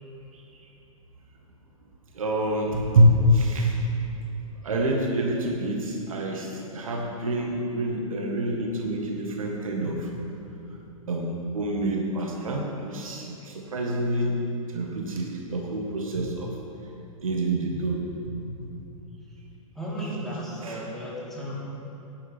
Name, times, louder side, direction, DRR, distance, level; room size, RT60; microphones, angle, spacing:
voice 1, 2.1-3.8 4.6-10.1 11.1-14.3 14.7-16.5 17.2-18.1 20.6-20.8, right 1 dB, 70° right, 0 dB, 1.9 m, -26 dB
voice 2, 19.7-21.6, right 1 dB, ahead, -7 dB, 3.1 m, -34 dB
17.0 x 10.5 x 3.7 m, 2.9 s
figure-of-eight pair, 110°, 18 cm